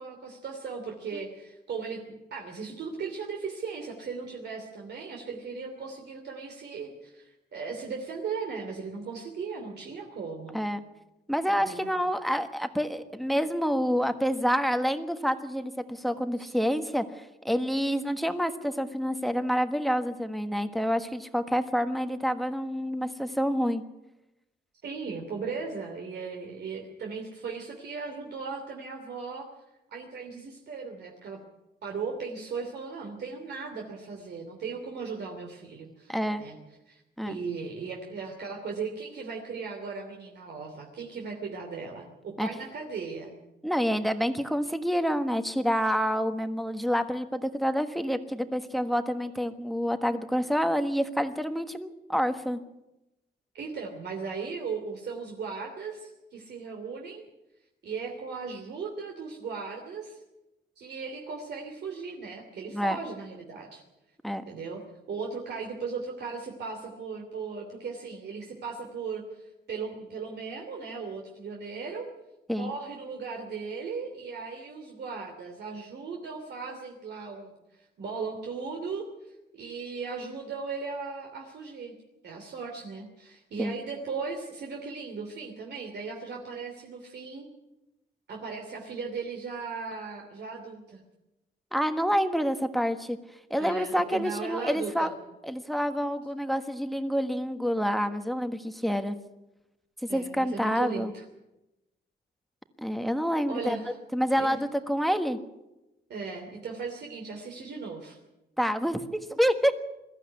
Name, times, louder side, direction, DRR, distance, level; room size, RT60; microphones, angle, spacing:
voice 1, 0.0-10.6 11.6-11.9 16.4-16.5 24.8-29.5 29.9-31.4 31.8-36.6 36.9-43.3 53.5-57.2 57.8-60.2 60.8-63.8 64.5-64.8 65.1-72.1 72.5-81.9 82.2-87.5 88.3-91.0 93.6-95.1 100.1-101.2 103.5-104.0 104.4-104.6 106.1-108.2, right 5 dB, 65° right, 1 dB, 3.1 m, -37 dB
voice 2, 11.3-23.8 36.1-36.4 37.2-37.4 42.4-42.5 43.6-52.6 62.7-63.0 64.2-64.4 72.5-72.7 83.6-83.7 91.7-93.2 93.5-95.1 95.4-99.2 100.1-101.1 102.8-103.8 104.1-105.4 108.6-109.7, equal, ahead, 8 dB, 1.4 m, -28 dB
22.0 x 14.5 x 9.6 m, 0.96 s
wide cardioid pair, 140°, 19 cm